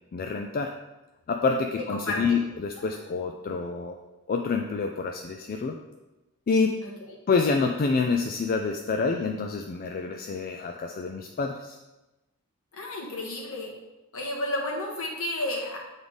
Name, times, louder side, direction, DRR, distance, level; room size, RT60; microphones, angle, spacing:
voice 1, 0.1-0.7 1.3-4.0 4.3-5.8 6.5-6.8 7.3-11.8, left 4 dB, 40° left, 3 dB, 0.3 m, -27 dB
voice 2, 1.9-2.2 12.7-13.7 14.1-15.8, left 1 dB, 65° left, -1 dB, 1.4 m, -31 dB
7.9 x 3.6 x 3.9 m, 1.0 s
head